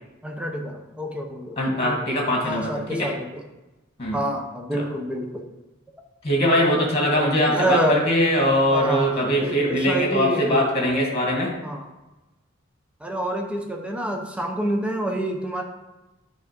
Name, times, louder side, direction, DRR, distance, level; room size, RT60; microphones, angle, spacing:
voice 1, 0.2-1.6 1.8-2.0 2.4-3.4 4.1-5.5 7.2-8.0 8.7-10.7 11.6-11.9 13.0-15.6, right 1 dB, 5° right, 2 dB, 0.8 m, -27 dB
voice 2, 1.6-3.1 4.0-4.2 4.7-4.8 6.2-11.5, equal, 30° left, -1 dB, 2.1 m, -22 dB
10.5 x 3.5 x 5.2 m, 1.1 s
head